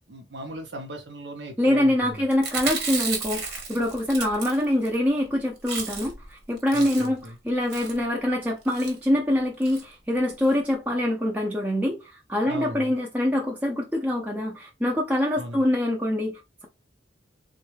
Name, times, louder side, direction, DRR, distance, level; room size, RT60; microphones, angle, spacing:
voice 1, 0.1-2.2 6.7-7.1 12.4-12.8 15.4-15.6, right 1 dB, 85° right, 0.7 m, -37 dB
voice 2, 1.6-16.6, left 1 dB, 10° right, 0.4 m, -25 dB
Chewing mastication, 2.3-4.9 5.3-5.4 5.6-6.3 6.6-7.3 7.7-8.0 8.6-8.9 9.6-9.8 10.2-10.3 10.4-10.5, right 5 dB, 65° right, 1.0 m, -33 dB
3.6 x 2.2 x 3.1 m
head